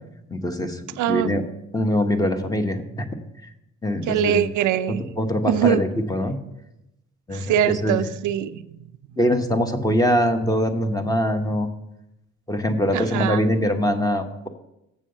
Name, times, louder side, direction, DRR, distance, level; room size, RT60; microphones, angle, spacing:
voice 1, 0.3-0.8 1.1-1.4 1.7-3.1 3.8-4.4 4.9-6.4 7.3-8.0 9.2-11.7 12.5-14.5, equal, 10° left, 6 dB, 1.0 m, -23 dB
voice 2, 1.0-1.4 4.1-5.0 5.4-5.8 7.3-8.6 12.9-13.4, right 10 dB, 75° right, 11 dB, 0.5 m, -22 dB
7.3 x 6.9 x 6.5 m, 0.87 s
cardioid pair, 90°, 30 cm